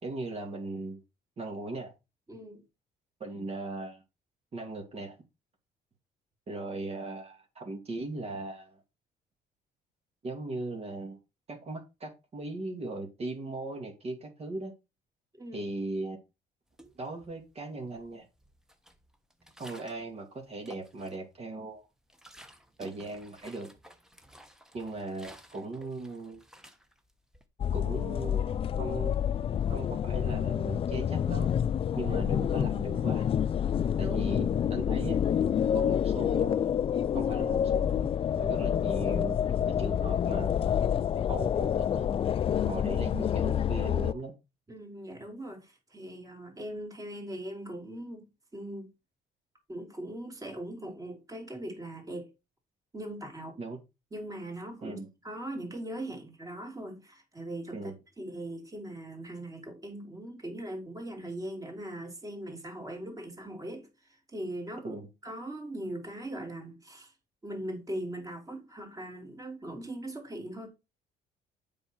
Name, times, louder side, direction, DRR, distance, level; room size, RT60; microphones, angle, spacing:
voice 1, 0.0-1.0 1.4-1.9 3.2-4.0 4.5-5.2 6.5-8.8 10.2-11.2 11.5-14.7 15.5-16.2 17.0-18.3 19.6-21.9 22.8-23.7 24.7-26.4 27.7-29.2 29.7-31.5 31.9-33.3 34.0-35.2 35.7-36.6 37.1-40.5 41.3-42.1 42.7-44.3 53.6-53.8 54.8-55.1 57.7-58.0 64.8-65.1, right 2 dB, 35° right, 2.2 m, -38 dB
voice 2, 2.3-2.6 15.3-15.7 33.6-34.2 42.5-42.8 44.7-48.2 48.5-48.9 49.7-52.3 52.9-53.6 54.1-63.9 64.3-65.0 65.2-67.1 67.4-70.7, right 1 dB, 20° right, 3.0 m, -40 dB
sound 1, 16.7-17.5 17.9-20.1 20.5-21.4 21.7-27.4, equal, 5° right, 1.2 m, -54 dB
sound 2, 27.6-44.1, left 9 dB, 35° left, 0.3 m, -28 dB
7.7 x 5.6 x 4.5 m
cardioid pair, 110°, 17 cm